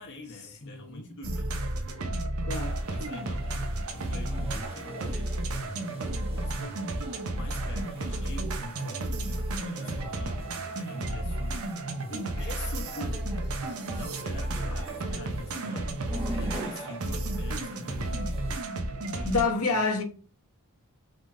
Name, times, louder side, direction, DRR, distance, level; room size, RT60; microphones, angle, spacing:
voice 1, 0.0-1.5 2.9-5.2 5.5-10.4 10.7-11.6 11.9-13.3 13.9-16.0 16.4-18.3 19.1-19.4, left 2 dB, 55° left, 0.9 m, -45 dB
voice 2, 0.6-1.1 2.5-2.8 14.7-14.8 19.2-20.0, left 4 dB, 80° left, 1.1 m, -28 dB
sound 1, 1.2-19.4, right 1 dB, 70° right, 0.8 m, -32 dB
sound 2, 2.6-18.6, right 1 dB, 25° right, 1.3 m, -44 dB
5.5 x 3.6 x 2.6 m
head